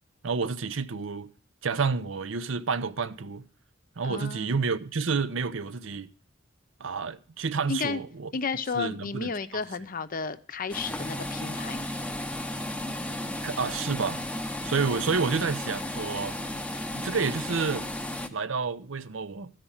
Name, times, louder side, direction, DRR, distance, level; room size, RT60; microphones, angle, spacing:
voice 1, 0.2-1.3 1.6-3.4 4.0-6.1 6.8-8.3 8.7-9.3 13.4-14.2 14.6-16.4 16.9-17.9 18.3-19.5, right 5 dB, 70° right, 0.7 m, -29 dB
voice 2, 4.0-4.5 7.7-8.0 8.3-11.8, left 4 dB, 45° left, 0.7 m, -32 dB
sound 1, 10.7-18.3, left 1 dB, 5° left, 0.8 m, -34 dB
13.5 x 5.1 x 7.1 m
head